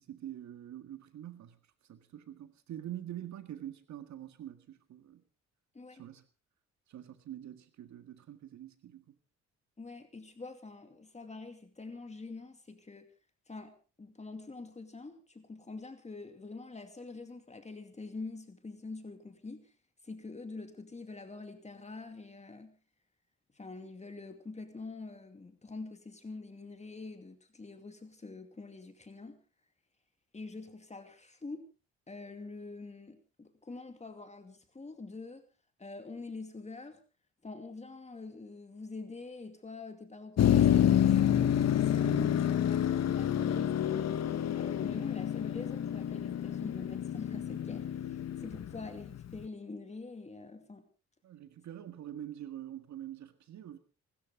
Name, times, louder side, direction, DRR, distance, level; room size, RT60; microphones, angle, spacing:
voice 1, 0.0-1.6 1.9-5.2 5.9-6.2 6.9-9.1 42.0-42.6 51.2-53.8, right 11 dB, 70° right, 1.8 m, -45 dB
voice 2, 9.8-13.1 13.5-19.7 20.0-22.8 23.5-29.4 30.3-31.6 32.1-35.4 35.8-37.0 37.4-44.2 44.6-50.8, left 3 dB, 20° left, 2.5 m, -45 dB
Motor vehicle (road), 40.4-49.4, left 10 dB, 60° left, 1.2 m, -28 dB
25.5 x 13.5 x 3.8 m
cardioid pair, 90°, 30 cm